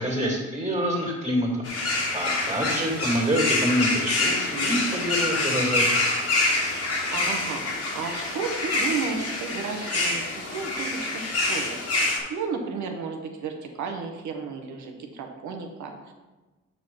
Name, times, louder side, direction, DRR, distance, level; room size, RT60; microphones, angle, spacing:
voice 1, 0.0-5.9, equal, 25° right, -2 dB, 2.5 m, -26 dB
sound 1, 1.6-12.2, left 2 dB, 55° left, 1.8 m, -26 dB
voice 2, 7.1-7.7 7.9-16.1, right 5 dB, 75° right, 4 dB, 1.3 m, -33 dB
6.9 x 5.4 x 4.5 m, 1.2 s
cardioid pair, 90°, 30 cm